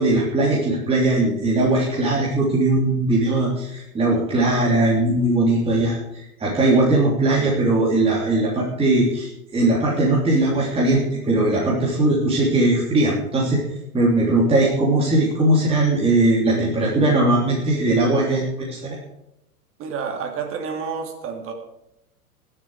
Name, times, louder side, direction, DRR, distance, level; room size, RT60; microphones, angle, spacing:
voice 1, 0.0-13.6 13.9-19.0, right 2 dB, 10° right, -4 dB, 3.3 m, -19 dB
voice 2, 19.8-21.5, right 6 dB, 30° right, 3 dB, 2.8 m, -29 dB
21.5 x 7.9 x 4.9 m, 0.83 s
figure-of-eight pair, 95°, 45 cm